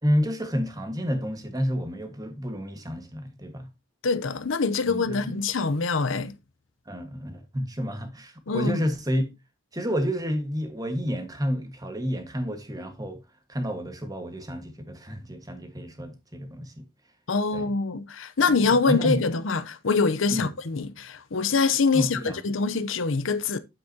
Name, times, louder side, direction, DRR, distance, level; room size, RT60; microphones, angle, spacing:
voice 1, 0.0-3.7 4.9-5.4 6.9-9.2 9.7-13.2 13.5-16.8 17.5-17.7 18.5-19.2 20.3-20.5 21.9-22.4, equal, 20° right, 1.6 m, -30 dB
voice 2, 4.0-6.3 8.5-8.8 17.3-23.6, left 4 dB, 85° left, 0.8 m, -24 dB
9.1 x 8.2 x 2.9 m
head